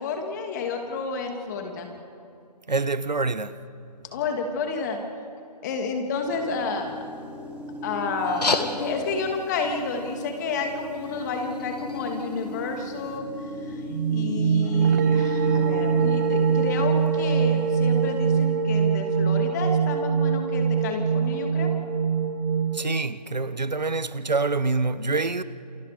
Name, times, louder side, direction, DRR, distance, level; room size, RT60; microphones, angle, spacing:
voice 1, 0.0-1.9 4.1-5.0 5.6-7.0 7.8-13.3 13.6-21.7, left 4 dB, 25° left, 2.5 m, -30 dB
voice 2, 2.7-3.6 22.7-25.4, right 3 dB, 90° right, 1.2 m, -26 dB
sound 1, 6.2-18.2, right 1 dB, 5° right, 3.4 m, -38 dB
sound 2, 8.2-13.2, left 3 dB, 70° left, 2.2 m, -34 dB
sound 3, 13.9-22.8, right 6 dB, 25° right, 0.8 m, -23 dB
28.5 x 28.0 x 5.2 m
figure-of-eight pair, 150°, 21 cm